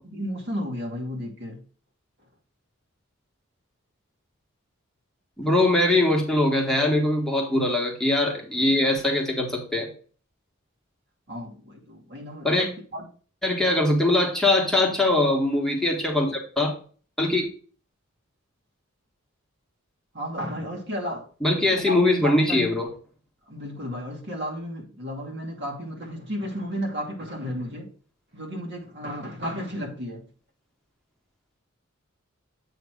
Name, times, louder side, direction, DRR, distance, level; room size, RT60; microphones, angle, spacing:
voice 1, 0.1-1.6 11.3-13.0 20.1-21.3 21.5-22.8 23.5-27.9 28.3-30.2, equal, 60° right, 2.5 m, -33 dB
voice 2, 5.4-9.9 12.4-12.7 13.4-16.7 17.2-17.5 21.4-22.9, left 2 dB, ahead, 1.4 m, -22 dB
8.2 x 3.2 x 6.3 m
head